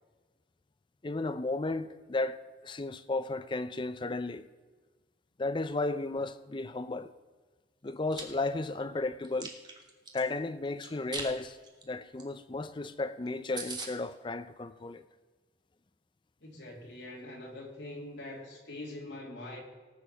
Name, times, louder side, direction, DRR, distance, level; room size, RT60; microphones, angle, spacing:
voice 1, 1.0-4.5 5.4-7.1 7.8-9.5 10.1-11.6 11.8-15.0, left 2 dB, 25° left, 0.5 m, -34 dB
Chewing mastication, 7.9-8.2 8.7-10.2 10.8-11.3 11.6-11.8 12.2-12.3 12.5-12.6 13.0-13.1 13.3-13.4 13.6-13.9, right 4 dB, 25° right, 1.4 m, -40 dB
voice 2, 16.4-19.6, left 1 dB, 75° left, 2.8 m, -43 dB
18.5 x 6.9 x 5.8 m
head